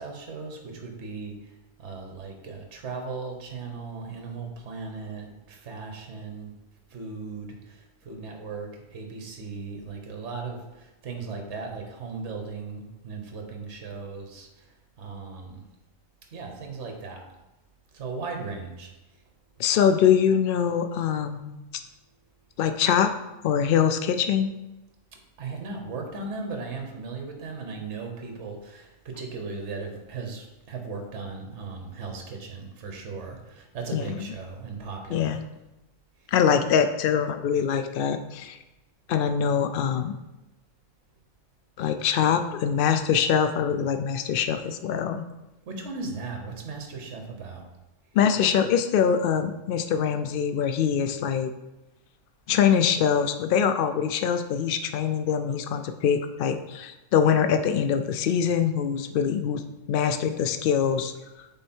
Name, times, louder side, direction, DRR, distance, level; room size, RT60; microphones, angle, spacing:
voice 1, 0.0-6.5 6.9-15.6 16.3-17.3 17.9-19.2 25.4-35.4 36.2-36.3 45.7-47.7, right 4 dB, 55° right, 3 dB, 1.3 m, -37 dB
voice 2, 19.6-21.6 22.6-23.1 23.4-24.5 33.9-34.3 35.1-35.4 36.3-38.6 39.1-40.1 41.8-45.2 48.1-51.5 52.5-59.6 59.9-61.1, left 8 dB, 70° left, 9 dB, 0.5 m, -23 dB
8.0 x 3.7 x 4.4 m, 1.0 s
omnidirectional pair, 1.5 m